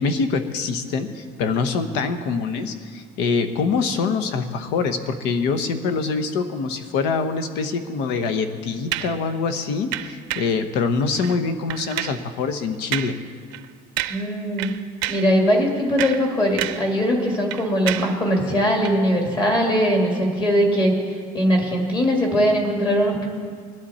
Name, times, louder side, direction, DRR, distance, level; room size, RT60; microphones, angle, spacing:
voice 1, 0.0-13.1, left 4 dB, 70° left, 8 dB, 1.1 m, -24 dB
sound 1, 8.9-9.2 9.9-10.6 11.1-11.4 11.7-12.2 12.9-13.2 13.5-13.7 14.0-14.3 14.6-15.3 15.8-16.9 17.2-18.2 18.8-19.0, right 14 dB, 80° right, 0.6 m, -29 dB
voice 2, 14.1-14.8 15.1-20.9 21.3-23.2, equal, 25° left, 0 dB, 2.2 m, -20 dB
20.5 x 12.0 x 4.3 m, 2.1 s
cardioid pair, 170°, 18 cm